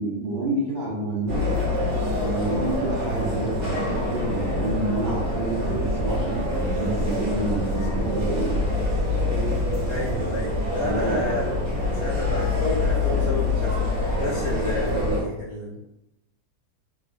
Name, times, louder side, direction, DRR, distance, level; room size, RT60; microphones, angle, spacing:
voice 1, 0.0-1.6 2.2-8.6 9.1-9.2 10.8-11.2, right 1 dB, 80° right, -7 dB, 0.4 m, -29 dB
sound 1, 1.3-15.2, left 1 dB, 55° right, 1.2 m, -25 dB
voice 2, 9.9-11.5 11.8-15.8, left 2 dB, 75° left, -11 dB, 1.4 m, -31 dB
3.7 x 2.1 x 2.4 m, 0.87 s
omnidirectional pair, 1.6 m